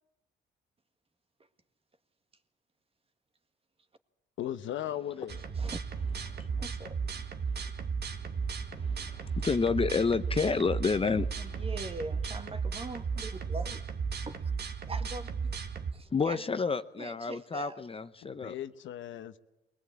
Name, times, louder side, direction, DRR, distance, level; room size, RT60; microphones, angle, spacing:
voice 1, 4.4-5.4 18.2-19.4, left 11 dB, 75° left, 1.0 m, -37 dB
sound 1, 5.3-15.9, right 5 dB, 55° right, 1.7 m, -35 dB
voice 2, 5.5-5.9 6.2-6.3 6.6-7.2 11.4-13.8 14.3-14.5 14.9-15.6 15.9-16.4 17.0-17.8, right 2 dB, 30° right, 1.7 m, -42 dB
voice 3, 6.3-6.6 8.8-11.6 16.1-18.5, left 4 dB, 30° left, 0.8 m, -30 dB
21.5 x 19.0 x 8.7 m
cardioid pair, 90°, 20 cm